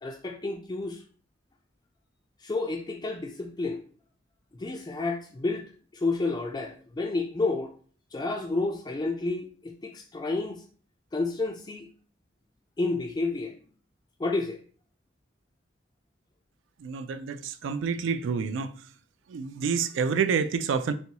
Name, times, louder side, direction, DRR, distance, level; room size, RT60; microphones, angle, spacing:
voice 1, 0.0-1.0 2.4-3.8 4.6-5.7 5.9-7.7 8.1-10.6 11.1-11.9 12.8-13.6 14.2-14.6, left 3 dB, 20° left, 0.3 m, -30 dB
voice 2, 16.8-18.7 19.3-20.9, right 6 dB, 80° right, 0.3 m, -28 dB
4.1 x 2.2 x 2.8 m
head